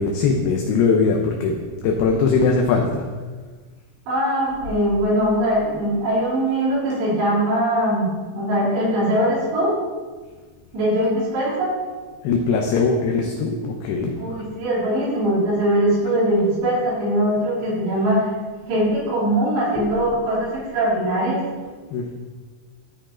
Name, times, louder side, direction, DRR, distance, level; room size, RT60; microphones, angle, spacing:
voice 1, 0.0-3.0 12.2-14.1 19.8-19.9 21.9-22.1, left 4 dB, 75° left, 1 dB, 2.4 m, -21 dB
voice 2, 4.1-8.1 8.3-9.7 10.7-11.7 14.2-18.2 18.7-21.4, right 1 dB, 70° right, -7 dB, 5.1 m, -21 dB
14.5 x 4.9 x 4.3 m, 1.4 s
omnidirectional pair, 5.1 m